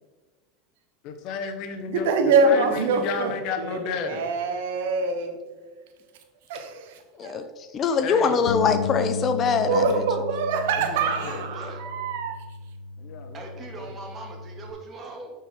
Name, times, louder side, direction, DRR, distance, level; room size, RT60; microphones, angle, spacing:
voice 1, 1.0-2.1 2.4-4.3 8.0-8.5 10.9-11.4 13.0-13.9, left 6 dB, 55° left, 6 dB, 1.0 m, -33 dB
voice 2, 1.9-5.4 6.5-7.4 9.7-12.4, right 4 dB, 70° right, 6 dB, 1.0 m, -25 dB
voice 3, 7.7-9.8, left 5 dB, 40° left, 9 dB, 0.6 m, -23 dB
Bass guitar, 8.5-14.7, left 5 dB, 80° left, 0.4 m, -34 dB
voice 4, 10.9-11.8 13.3-15.3, right 3 dB, 35° right, 1 dB, 1.9 m, -40 dB
9.4 x 4.4 x 3.7 m, 1.3 s
hypercardioid pair, 90°, 0 cm